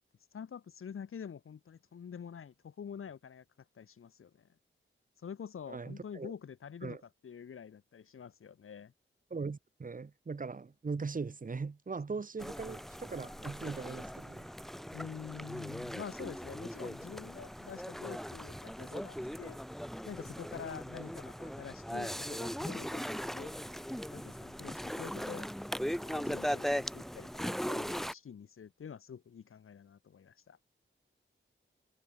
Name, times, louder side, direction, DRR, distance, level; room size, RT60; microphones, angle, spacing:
voice 1, 0.3-3.4 3.8-4.5 5.2-7.0 7.2-8.9 14.9-19.6 20.0-23.0 23.3-23.5 24.1-25.5 26.0-30.6, left 7 dB, 80° left, 2.0 m, -47 dB
voice 2, 5.7-6.3 6.8-7.0 9.3-14.5, right 4 dB, 40° right, 3.5 m, -40 dB
sound 1, 12.4-28.1, equal, ahead, 2.6 m, -39 dB
wide cardioid pair, 155°, 21 cm